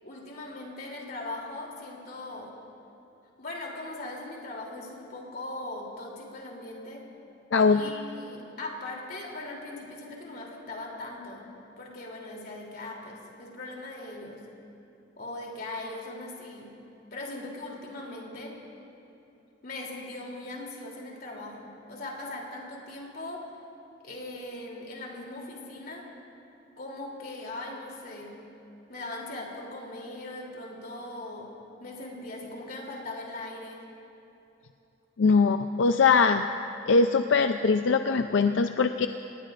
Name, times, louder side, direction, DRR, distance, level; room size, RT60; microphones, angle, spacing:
voice 1, 0.0-2.5 3.4-7.1 7.7-11.5 11.8-14.5 15.2-16.8 17.1-18.6 19.6-23.5 24.0-26.1 26.8-28.5 28.9-33.8, left 2 dB, 55° left, -2 dB, 3.1 m, -40 dB
voice 2, 7.5-7.8 35.2-36.5 36.9-39.1, left 4 dB, 85° left, 7 dB, 0.5 m, -22 dB
27.0 x 19.0 x 2.5 m, 2.9 s
head